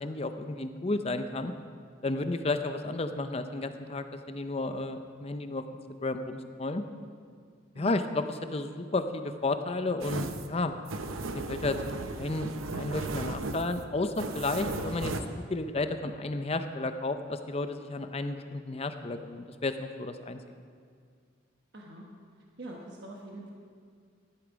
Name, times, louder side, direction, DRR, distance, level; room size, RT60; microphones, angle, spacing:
voice 1, 0.0-1.5 2.0-5.6 6.0-6.8 7.8-8.2 8.5-10.8 11.3-11.8 12.2-15.1 15.5-20.4, left 2 dB, 30° left, 9 dB, 0.5 m, -32 dB
sound 1, 10.0-15.2, right 3 dB, 85° right, 0.8 m, -36 dB
voice 2, 21.7-22.0 22.6-23.5, right 1 dB, 55° right, -1 dB, 1.3 m, -43 dB
14.0 x 11.5 x 5.1 m, 2.1 s
head